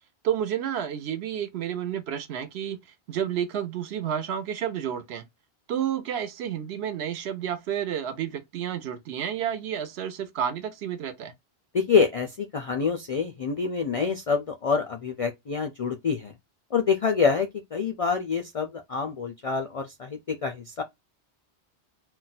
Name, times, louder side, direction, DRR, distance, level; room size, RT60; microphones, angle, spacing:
voice 1, 0.2-2.8 3.1-5.2 5.7-11.3, right 9 dB, 75° right, 0.8 m, -30 dB
voice 2, 11.7-16.3 16.7-20.8, left 5 dB, 60° left, 0.3 m, -26 dB
2.4 x 2.2 x 4.0 m
omnidirectional pair, 1.1 m